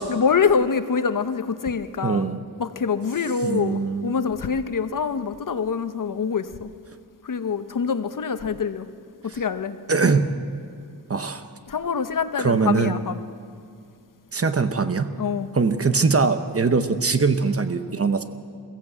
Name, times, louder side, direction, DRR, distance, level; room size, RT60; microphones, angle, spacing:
voice 1, 0.1-2.3 2.6-6.7 7.2-8.9 9.2-9.8 11.7-13.2 15.2-15.5, left 6 dB, 55° left, 10 dB, 0.8 m, -25 dB
voice 2, 2.0-2.4 3.4-4.2 9.9-10.3 11.1-11.5 12.4-13.0 14.3-15.1 15.5-18.2, right 4 dB, 40° right, 10 dB, 0.9 m, -22 dB
22.0 x 15.0 x 8.0 m, 2.3 s
wide cardioid pair, 140°, 38 cm